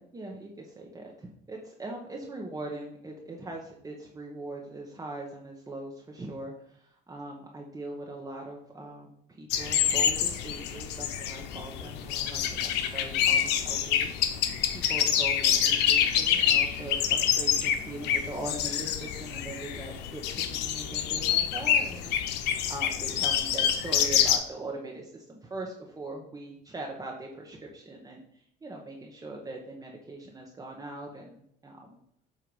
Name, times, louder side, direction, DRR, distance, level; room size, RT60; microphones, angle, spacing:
voice 1, 0.0-14.1 14.7-28.2 28.6-32.0, right 2 dB, 20° right, -1 dB, 1.0 m, -41 dB
sound 1, 9.5-24.4, left 9 dB, 90° left, 0.7 m, -27 dB
7.7 x 2.8 x 5.3 m, 0.69 s
cardioid pair, 110°, 17 cm